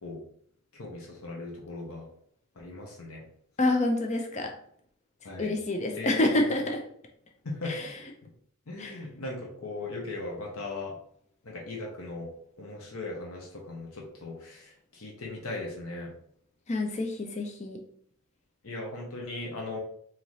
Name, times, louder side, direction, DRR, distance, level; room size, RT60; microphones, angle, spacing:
voice 1, 0.8-2.1 2.6-3.2 5.2-5.5 5.9-6.1 6.4-6.5 7.4-7.8 8.2-8.3 8.7-10.9 11.4-12.3 12.6-16.1 18.6-19.8, left 2 dB, 80° left, -1 dB, 0.9 m, -38 dB
voice 2, 3.6-4.5 5.4-6.8 7.6-7.9 8.8-9.0 16.7-17.8, left 2 dB, 30° left, 3 dB, 0.5 m, -27 dB
4.0 x 2.9 x 3.1 m, 0.64 s
head